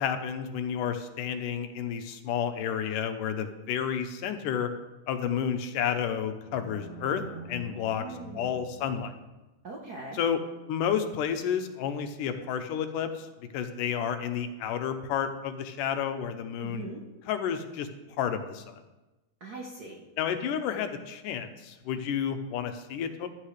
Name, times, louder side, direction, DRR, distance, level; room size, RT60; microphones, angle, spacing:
voice 1, 0.0-4.7 5.1-7.2 7.5-8.1 8.3-9.1 10.1-10.4 10.7-13.3 13.5-16.9 17.3-17.9 18.2-18.8 20.2-23.3, left 8 dB, 85° left, 8 dB, 2.4 m, -31 dB
sound 1, 6.3-9.3, equal, 45° left, 2.6 m, -45 dB
voice 2, 7.9-8.7 9.6-10.2 16.6-17.0 19.4-20.0, right 3 dB, 80° right, -1 dB, 0.8 m, -41 dB
14.5 x 12.5 x 3.3 m, 1.1 s
omnidirectional pair, 3.7 m